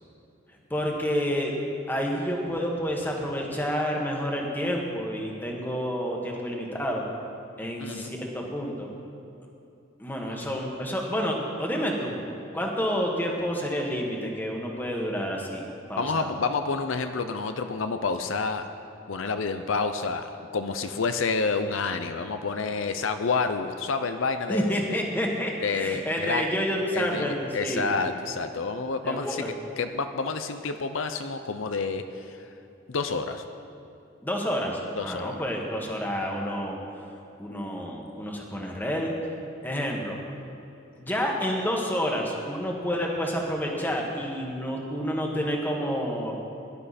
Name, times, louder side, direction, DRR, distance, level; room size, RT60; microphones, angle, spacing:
voice 1, 0.7-1.5 1.9-7.0 7.6-8.9 10.0-12.2 12.5-15.6 15.9-16.4 24.5-27.9 29.0-29.5 34.2-36.8 37.4-39.1 39.6-40.2 41.0-46.3, equal, 10° left, -1 dB, 1.5 m, -29 dB
voice 2, 7.8-8.1 10.2-10.5 16.0-18.6 19.1-25.0 25.6-26.5 26.9-29.4 29.8-32.4 32.9-33.4 35.0-35.4, left 4 dB, 75° left, 8 dB, 0.6 m, -29 dB
17.5 x 11.5 x 4.3 m, 2.8 s
head